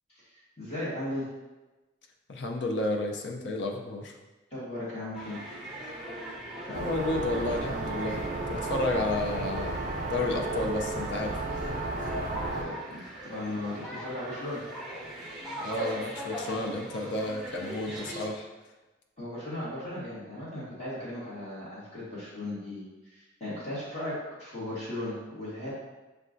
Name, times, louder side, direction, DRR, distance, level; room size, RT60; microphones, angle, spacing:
voice 1, 0.1-1.3 4.5-5.4 12.5-14.6 19.2-25.7, left 1 dB, 30° left, -10 dB, 1.4 m, -37 dB
voice 2, 2.3-4.2 6.7-11.4 12.0-12.2 15.6-18.5, left 2 dB, 60° left, 2 dB, 0.5 m, -32 dB
sound 1, 5.1-18.3, equal, ahead, 0.7 m, -40 dB
sound 2, 6.7-12.6, right 2 dB, 40° right, 0.4 m, -33 dB
6.4 x 2.3 x 2.5 m, 1.1 s
head